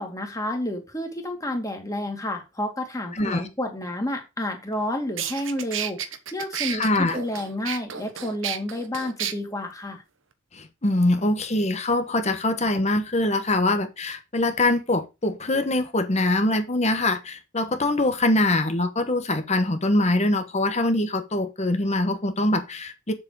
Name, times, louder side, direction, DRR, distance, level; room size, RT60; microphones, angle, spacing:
voice 1, 0.0-6.0 6.3-10.0, left 1 dB, 15° left, 2.3 m, -30 dB
voice 2, 3.2-3.5 6.7-7.2 10.5-23.1, left 2 dB, 30° left, 1.1 m, -23 dB
sound 1, 4.7-4.8 5.2-9.3, right 9 dB, 60° right, 1.0 m, -31 dB
7.6 x 7.3 x 4.7 m
head